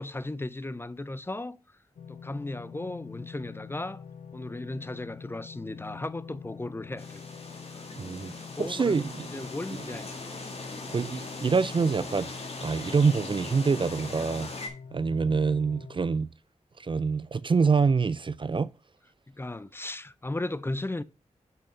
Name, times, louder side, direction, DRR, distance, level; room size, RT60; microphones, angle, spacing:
voice 1, 0.0-1.6 2.1-4.0 4.3-7.2 7.7-7.9 8.3-9.0 9.3-10.1 19.3-21.0, left 2 dB, 20° left, 0.6 m, -36 dB
sound 1, 2.0-16.0, left 6 dB, 75° left, 0.6 m, -45 dB
sound 2, 7.0-14.7, left 3 dB, 50° left, 1.8 m, -40 dB
voice 2, 8.0-8.3 8.6-9.3 10.9-14.5 14.9-16.3 16.8-18.7, right 5 dB, 40° right, 0.4 m, -26 dB
5.7 x 5.3 x 5.4 m
cardioid pair, 50°, 13 cm